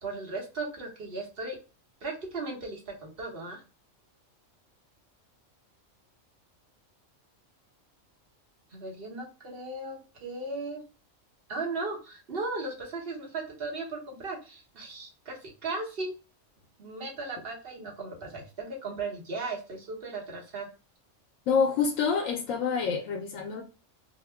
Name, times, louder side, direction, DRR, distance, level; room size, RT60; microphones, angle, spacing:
voice 1, 0.0-1.6 2.0-3.6 8.7-10.8 11.5-16.1 16.8-20.7, right 3 dB, 50° right, 1.1 m, -36 dB
voice 2, 21.5-23.6, left 5 dB, 85° left, 1.0 m, -27 dB
2.8 x 2.1 x 3.3 m
omnidirectional pair, 1.3 m